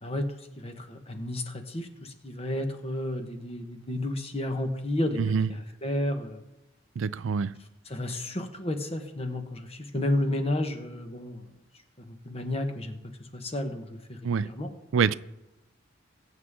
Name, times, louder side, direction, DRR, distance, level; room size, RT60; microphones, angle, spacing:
voice 1, 0.6-6.4 7.9-11.5 12.0-13.0 13.3-14.7, left 1 dB, 30° left, 1.3 m, -32 dB
voice 2, 5.2-5.5 7.0-7.5 14.2-14.5 14.9-15.1, right 6 dB, 75° right, 0.4 m, -25 dB
21.5 x 8.2 x 3.7 m
head